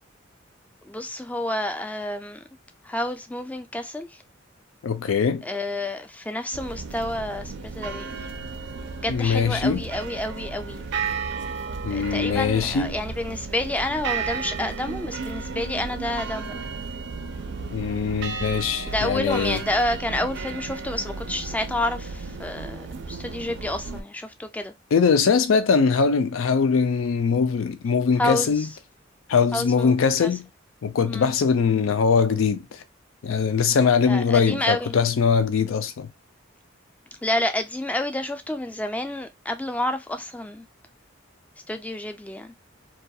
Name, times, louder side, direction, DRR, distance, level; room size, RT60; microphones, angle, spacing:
voice 1, 0.8-2.4 2.8-4.2 5.4-8.1 9.0-10.9 11.9-16.6 18.9-24.7 28.2-28.7 29.5-30.3 31.1-31.3 34.1-35.0 37.2-40.7 41.7-42.5, left 1 dB, 10° left, 0.3 m, -29 dB
voice 2, 4.8-5.4 9.1-9.8 11.8-13.0 17.7-19.6 24.9-28.7 29.3-30.4 30.8-32.7 33.2-36.1, left 6 dB, 85° left, 0.4 m, -21 dB
sound 1, 6.5-24.0, right 4 dB, 60° right, 0.4 m, -33 dB
2.3 x 2.2 x 2.6 m
head